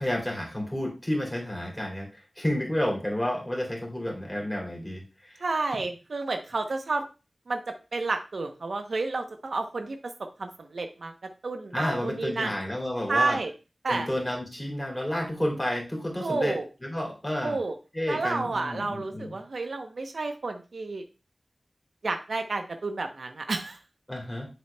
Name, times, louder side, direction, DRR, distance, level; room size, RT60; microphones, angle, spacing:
voice 1, 0.0-2.1 2.4-5.4 5.7-5.8 11.7-13.4 13.9-17.6 17.9-19.4 24.1-24.5, left 1 dB, 10° left, -1 dB, 2.9 m, -30 dB
voice 2, 5.4-7.0 7.5-10.1 10.4-11.1 11.4-12.5 13.1-13.5 13.8-14.1 16.2-16.7 17.4-17.7 18.1-21.0 22.0-23.8, right 3 dB, 80° right, 6 dB, 0.8 m, -30 dB
7.2 x 7.0 x 2.2 m, 0.30 s
wide cardioid pair, 70°, 0 cm